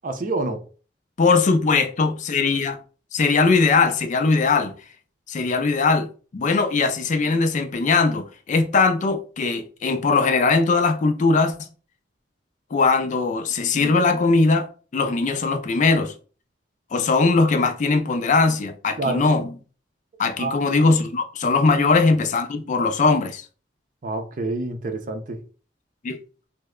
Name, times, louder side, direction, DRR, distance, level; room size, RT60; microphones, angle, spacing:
voice 1, 0.0-0.6 19.0-19.2 20.4-20.6 24.0-25.4, right 2 dB, 45° right, 0.5 m, -27 dB
voice 2, 1.2-2.8 3.1-4.7 5.3-11.5 12.7-16.1 16.9-19.5 20.2-23.5 26.0-26.2, left 4 dB, 40° left, 0.4 m, -20 dB
3.2 x 2.1 x 3.5 m
head